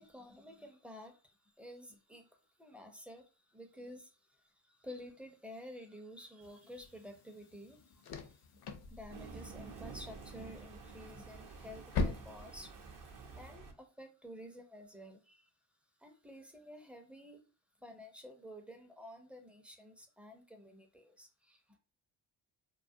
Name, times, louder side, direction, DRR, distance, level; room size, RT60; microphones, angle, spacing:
voice 1, 0.0-15.5 16.0-17.4 17.8-21.8, left 1 dB, 5° right, 3 dB, 0.5 m, -52 dB
sound 1, 6.4-13.5, left 3 dB, 50° left, 0.5 m, -43 dB
Thunder, 9.1-13.7, right 4 dB, 40° right, 0.6 m, -50 dB
2.3 x 2.1 x 2.6 m, 0.34 s
cardioid pair, 80°, 48 cm